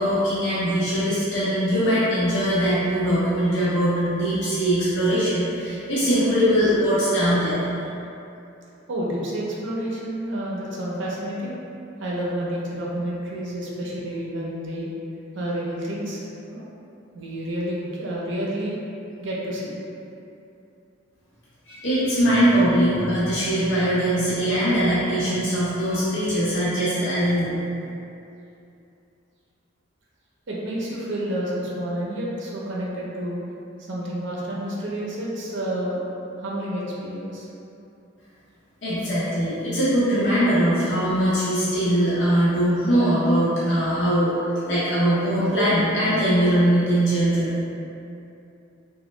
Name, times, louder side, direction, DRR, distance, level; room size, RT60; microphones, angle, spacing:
voice 1, 0.0-7.6 21.7-27.6 38.8-44.3 44.7-47.6, equal, 65° left, -11 dB, 0.7 m, -21 dB
voice 2, 8.9-11.5 12.0-14.9 15.3-16.2 16.5-16.6 17.1-18.8 19.2-19.7 30.5-33.4 33.9-36.0 36.4-37.5, right 1 dB, 65° right, -5 dB, 0.6 m, -29 dB
2.9 x 2.2 x 3.1 m, 2.7 s
head